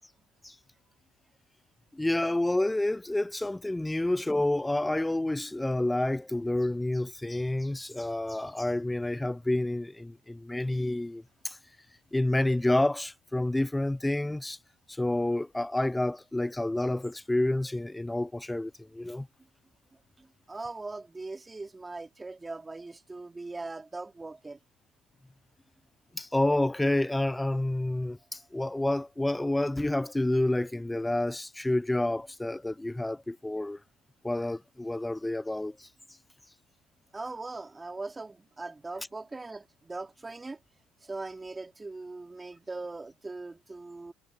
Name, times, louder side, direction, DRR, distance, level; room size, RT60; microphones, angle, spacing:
voice 1, 1.9-11.6 12.1-14.6 14.9-19.3 26.1-33.8 34.2-35.9, left 1 dB, 10° left, 0.5 m, -29 dB
voice 2, 20.2-24.6 37.1-40.6 41.0-44.1, right 3 dB, 15° right, 2.9 m, -40 dB
hypercardioid pair, 70°, 0 cm